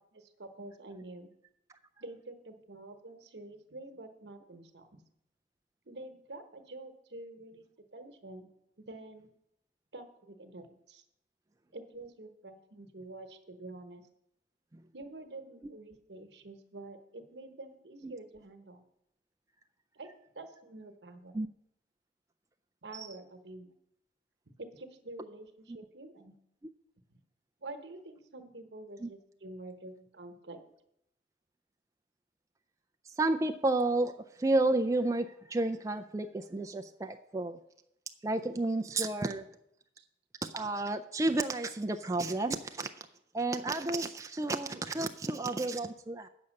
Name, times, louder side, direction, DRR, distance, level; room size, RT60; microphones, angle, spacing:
voice 1, 0.1-1.3 2.0-4.9 5.8-7.6 7.9-8.5 8.8-9.3 9.9-11.0 11.7-14.1 14.9-18.8 19.9-20.1 20.3-21.4 22.8-23.7 24.6-26.4 27.1-27.2 27.6-30.6 40.0-40.1, right 2 dB, 75° right, 7 dB, 1.1 m, -47 dB
voice 2, 33.2-34.1 34.4-37.6 38.2-39.4 40.4-42.9 43.3-46.3, right 2 dB, 20° right, 7 dB, 0.3 m, -31 dB
8.5 x 6.9 x 6.4 m, 0.80 s
head